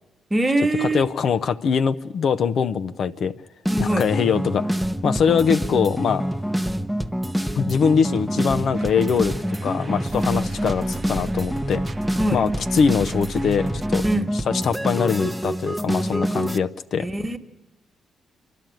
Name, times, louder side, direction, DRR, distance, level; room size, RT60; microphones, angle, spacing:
voice 1, 0.3-1.1 3.7-4.1 10.2-10.4 12.2-12.4 14.0-14.3 17.0-17.4, right 1 dB, 20° right, 1.5 m, -23 dB
voice 2, 0.8-3.3 3.8-4.7 5.0-6.3 7.5-11.8 12.3-14.0 14.5-17.1, left 6 dB, 65° left, 0.6 m, -22 dB
sound 1, 3.6-16.6, equal, ahead, 0.8 m, -26 dB
sound 2, 8.7-14.1, right 3 dB, 40° right, 0.8 m, -37 dB
27.0 x 12.0 x 9.1 m
supercardioid pair, 60°, 0 cm